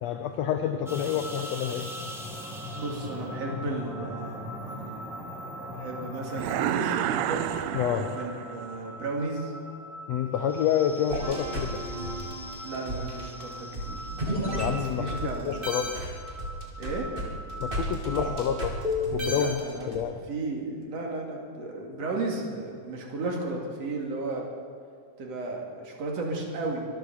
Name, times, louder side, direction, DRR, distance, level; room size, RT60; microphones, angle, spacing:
voice 1, 0.0-1.9 7.7-8.1 10.1-11.8 14.6-15.9 17.6-18.8 19.1-19.6 19.9-20.2, left 9 dB, 75° left, 7 dB, 1.6 m, -28 dB
sound 1, 0.9-18.7, equal, ahead, 0.5 m, -40 dB
voice 2, 2.7-9.6 12.6-15.7 16.8-17.1 19.3-20.0 20.3-24.5 25.2-26.9, right 3 dB, 50° right, 0 dB, 3.3 m, -34 dB
sound 2, 6.3-8.7, right 12 dB, 85° right, 1.5 m, -30 dB
sound 3, 11.1-15.3 15.6-20.0, equal, 20° right, 2.2 m, -32 dB
24.0 x 8.2 x 7.2 m, 2.2 s
omnidirectional pair, 3.7 m